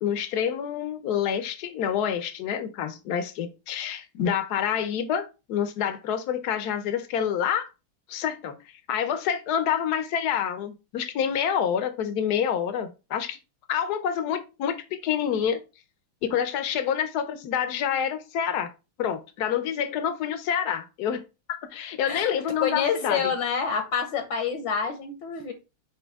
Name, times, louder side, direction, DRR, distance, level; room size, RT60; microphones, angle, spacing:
voice 1, 0.0-7.7 8.1-8.6 8.9-13.4 13.7-15.6 16.2-18.7 19.0-21.2 21.5-23.2, left 8 dB, 60° left, 1.2 m, -27 dB
voice 2, 22.1-25.5, left 6 dB, 80° left, 1.9 m, -28 dB
8.5 x 3.2 x 3.5 m
omnidirectional pair, 2.2 m